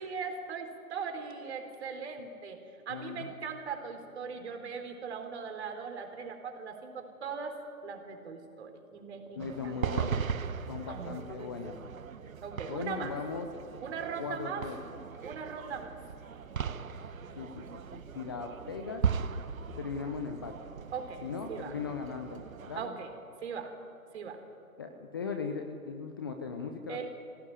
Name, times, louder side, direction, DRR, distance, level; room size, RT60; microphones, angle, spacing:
voice 1, 0.0-2.6 2.9-9.7 10.9-11.2 12.4-13.1 13.8-14.7 15.2-16.0 20.9-21.8 22.7-23.1 23.4-23.8 24.1-24.4 26.9-27.1, right 6 dB, 45° right, 5 dB, 3.9 m, -39 dB
voice 2, 2.9-3.3 9.4-10.2 10.7-11.7 12.7-13.5 14.2-14.8 17.4-17.6 17.9-19.0 19.8-20.8 21.2-22.9 24.8-27.1, left 5 dB, 15° left, 5 dB, 0.6 m, -38 dB
sound 1, 9.4-22.9, right 7 dB, 65° right, 1.3 m, -38 dB
24.5 x 17.0 x 9.9 m, 2.6 s
figure-of-eight pair, 145°, 45 cm